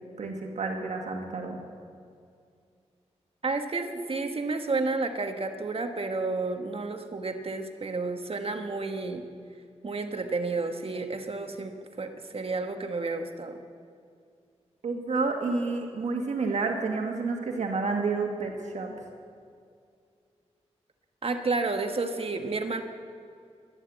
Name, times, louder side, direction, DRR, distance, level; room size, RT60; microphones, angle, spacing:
voice 1, 0.2-1.6 14.8-18.9, right 4 dB, 85° right, 2 dB, 1.7 m, -30 dB
voice 2, 3.4-9.2 9.8-13.6 21.2-22.8, right 3 dB, 55° right, 6 dB, 1.3 m, -31 dB
12.0 x 11.5 x 8.2 m, 2.3 s
cardioid pair, 60°, 12 cm